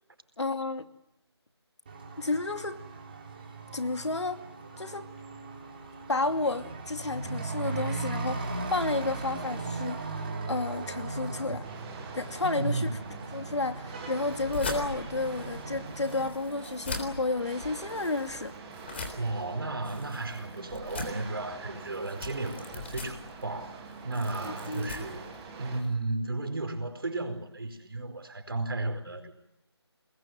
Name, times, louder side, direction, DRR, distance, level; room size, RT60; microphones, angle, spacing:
voice 1, 0.4-0.8 2.2-2.8 3.7-4.4 4.8-5.1 6.1-11.7 12.1-12.9 13.3-18.5 24.4-25.1, left 3 dB, 85° left, 2.5 m, -31 dB
Truck / Accelerating revving vroom, 1.9-16.3, right 3 dB, 20° right, 3.2 m, -38 dB
sound 1, 11.6-25.8, right 5 dB, 5° right, 1.2 m, -45 dB
voice 2, 12.4-13.0 19.2-25.3 25.6-29.4, right 2 dB, 55° right, 4.6 m, -34 dB
sound 2, 14.2-25.9, left 3 dB, 25° left, 3.6 m, -41 dB
26.0 x 21.0 x 9.3 m
figure-of-eight pair, 175°, 14 cm